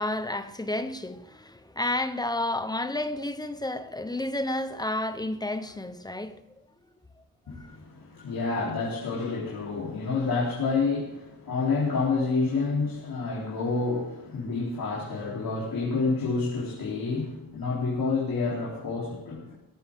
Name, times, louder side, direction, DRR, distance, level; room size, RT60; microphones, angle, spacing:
voice 1, 0.0-6.4, left 1 dB, 10° left, 0.9 m, -31 dB
voice 2, 7.5-19.5, left 4 dB, 80° left, 3.8 m, -28 dB
16.5 x 14.0 x 3.7 m
wide cardioid pair, 160°, 35 cm